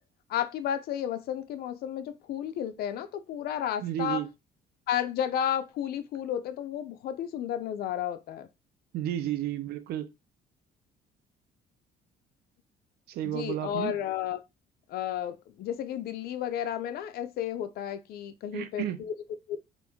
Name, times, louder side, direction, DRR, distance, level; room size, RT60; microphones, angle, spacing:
voice 1, 0.3-4.2 4.9-8.5 13.2-14.4 14.9-19.1 19.5-19.6, left 10 dB, 65° left, 0.5 m, -32 dB
voice 2, 3.8-4.3 8.9-10.1 13.1-13.9 18.5-19.0, right 12 dB, 70° right, 0.6 m, -32 dB
2.9 x 2.5 x 3.5 m
cardioid pair, 110°, 17 cm